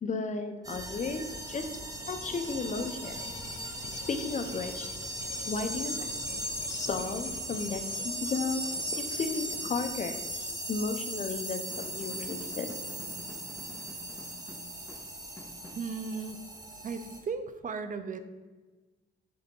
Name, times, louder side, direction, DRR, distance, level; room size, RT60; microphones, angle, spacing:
voice 1, 0.0-1.7 2.1-3.2 3.9-4.9 5.5-6.4 6.7-12.8, left 4 dB, 40° left, 7 dB, 0.8 m, -34 dB
sound 1, 0.6-17.2, equal, 20° right, 1.3 m, -38 dB
sound 2, 2.4-9.8, left 6 dB, 70° left, 0.7 m, -51 dB
sound 3, 11.7-16.8, left 2 dB, 10° left, 0.5 m, -49 dB
voice 2, 15.7-16.4 16.8-18.2, right 5 dB, 40° right, 10 dB, 0.7 m, -36 dB
7.8 x 3.6 x 5.3 m, 1.3 s
cardioid pair, 90°, 20 cm